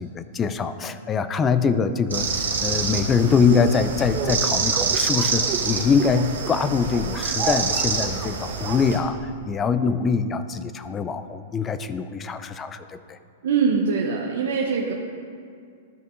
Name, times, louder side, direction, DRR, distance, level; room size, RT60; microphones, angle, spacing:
voice 1, 0.0-13.2, left 5 dB, 25° left, 11 dB, 0.4 m, -23 dB
sound 1, 2.1-9.0, right 5 dB, 85° right, 1.3 m, -26 dB
sound 2, 3.4-9.5, right 6 dB, 35° right, 0.6 m, -33 dB
voice 2, 13.4-14.9, right 5 dB, 70° right, -1 dB, 0.7 m, -23 dB
13.5 x 5.3 x 2.6 m, 2.3 s
hypercardioid pair, 115°, 0 cm